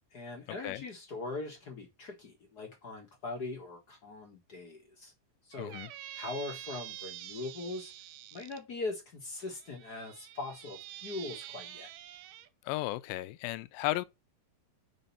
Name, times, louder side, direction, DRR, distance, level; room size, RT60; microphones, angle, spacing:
voice 1, 0.1-5.1 5.5-5.8 6.2-7.9 8.3-11.9, left 3 dB, 60° left, 1.0 m, -41 dB
Squeak, 5.5-8.6 9.4-12.5, right 13 dB, 80° right, 2.1 m, -47 dB
voice 2, 5.6-5.9 12.7-14.1, left 16 dB, 85° left, 2.4 m, -34 dB
5.2 x 5.1 x 5.5 m
omnidirectional pair, 4.1 m